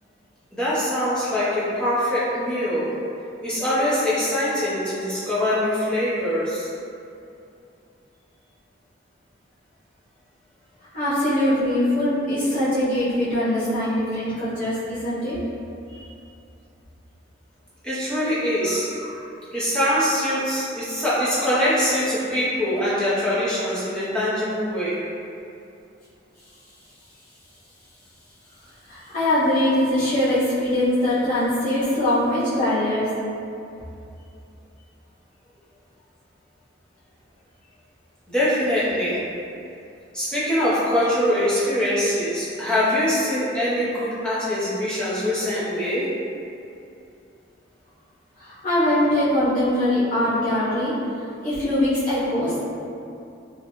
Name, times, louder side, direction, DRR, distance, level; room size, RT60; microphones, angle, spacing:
voice 1, 0.5-3.0 3.4-6.7 17.8-18.9 19.5-25.0 38.3-39.2 40.1-46.1, left 1 dB, 5° left, -11 dB, 0.5 m, -23 dB
voice 2, 10.9-15.4 15.9-16.1 18.9-19.2 28.9-33.1 48.4-50.9 51.4-52.6, left 1 dB, 45° left, -13 dB, 0.7 m, -22 dB
2.5 x 2.1 x 2.9 m, 2.6 s
head